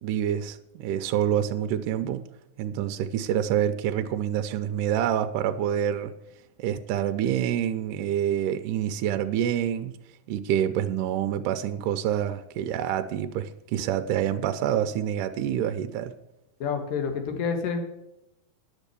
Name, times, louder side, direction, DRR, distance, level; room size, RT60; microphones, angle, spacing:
voice 1, 0.0-2.2 2.6-6.1 6.6-9.9 10.3-16.1, right 10 dB, 80° right, 8 dB, 2.1 m, -27 dB
voice 2, 16.6-17.8, left 6 dB, 75° left, 5 dB, 3.0 m, -28 dB
10.0 x 8.2 x 6.8 m, 0.86 s
omnidirectional pair, 3.9 m